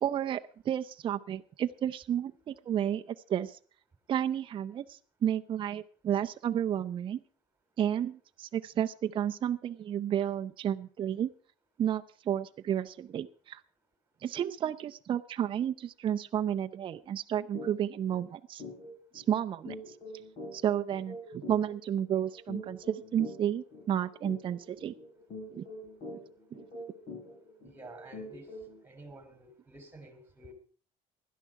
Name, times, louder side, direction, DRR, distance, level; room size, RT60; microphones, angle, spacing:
voice 1, 0.0-3.6 4.1-7.2 7.8-11.3 11.8-13.6 14.2-18.6 19.1-19.8 20.5-24.9 25.5-25.6 26.5-26.6, right 10 dB, 35° right, 7 dB, 0.5 m, -32 dB
sound 1, 17.5-17.7 18.1-18.2 18.6-28.8, left 1 dB, 50° left, 4.2 m, -45 dB
voice 2, 27.6-28.5 28.8-30.5, right 2 dB, 15° right, 7 dB, 2.9 m, -50 dB
16.5 x 11.0 x 4.7 m, 0.43 s
cardioid pair, 140°, 15 cm